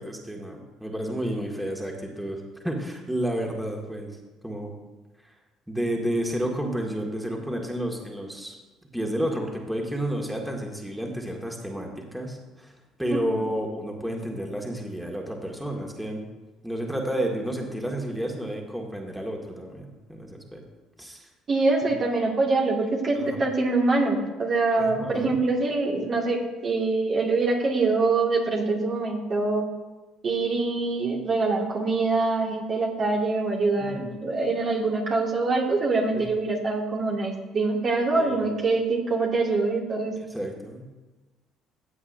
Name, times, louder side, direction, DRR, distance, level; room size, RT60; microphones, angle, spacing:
voice 1, 0.0-4.1 4.4-4.7 5.2-5.3 5.7-8.6 8.9-12.7 13.0-16.2 16.6-20.6 21.0-21.3 23.2-23.4 24.7-25.3 33.8-34.0 36.1-36.2 38.1-38.4 40.3-40.9, right 1 dB, 5° right, 0 dB, 1.9 m, -31 dB
voice 2, 13.1-13.5 21.5-29.7 30.2-40.1, right 3 dB, 40° right, -1 dB, 1.9 m, -24 dB
14.5 x 8.6 x 2.6 m, 1.2 s
figure-of-eight pair, 55°, 0 cm